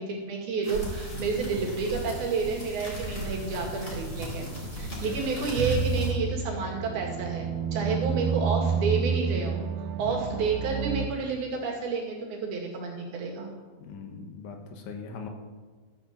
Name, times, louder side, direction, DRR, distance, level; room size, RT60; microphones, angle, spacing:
voice 1, 0.0-9.7 10.0-13.5, right 4 dB, 60° right, -1 dB, 3.8 m, -30 dB
sound 1, 0.6-6.1, right 1 dB, 20° left, 3.7 m, -37 dB
sound 2, 5.6-11.1, right 6 dB, 80° right, 2.2 m, -29 dB
voice 2, 10.0-10.4 13.8-15.3, left 4 dB, 80° left, 4 dB, 3.8 m, -40 dB
14.0 x 8.1 x 7.4 m, 1.5 s
omnidirectional pair, 5.2 m